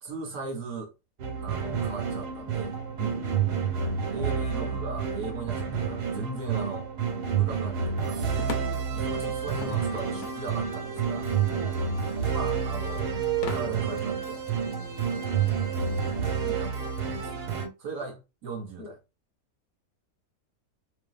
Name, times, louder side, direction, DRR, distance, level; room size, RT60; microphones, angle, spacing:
voice 1, 0.0-0.9 1.4-2.7 4.1-6.9 7.3-8.2 8.9-11.3 12.3-13.1 13.5-14.4 16.3-17.5 17.8-19.0, right 4 dB, 65° right, 0.9 m, -38 dB
sound 1, 1.2-17.7, right 6 dB, 85° right, 1.3 m, -29 dB
voice 2, 3.0-4.0 8.5-8.9 11.5-11.8 14.7-15.3 18.8-18.9, left 2 dB, 60° left, 1.0 m, -45 dB
sound 2, 7.9-13.6, left 7 dB, 80° left, 1.1 m, -41 dB
2.5 x 2.4 x 2.3 m
omnidirectional pair, 1.7 m